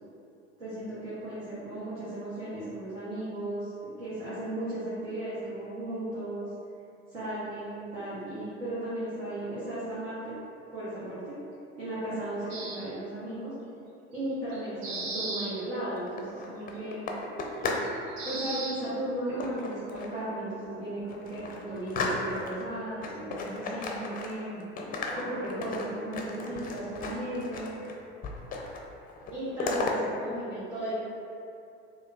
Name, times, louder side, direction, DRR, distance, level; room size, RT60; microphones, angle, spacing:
voice 1, 0.6-3.7 4.0-6.5 7.1-10.2 10.7-11.4 11.8-13.5 14.1-17.1 18.2-24.6 25.1-27.7 29.3-31.0, right 1 dB, 80° right, -12 dB, 1.2 m, -35 dB
sound 1, 12.5-12.8 14.5-15.5 16.0-16.1 17.8-18.7, right 3 dB, 55° right, 0.7 m, -35 dB
sound 2, 16.0-17.9 18.2-18.6 19.4-20.2 20.7-20.8 21.1-22.6 23.0-24.5 24.8-27.9 28.2-28.8 29.1-30.0, left 3 dB, 25° left, 0.4 m, -35 dB
4.2 x 2.7 x 2.4 m, 2.6 s
hypercardioid pair, 75°, 35 cm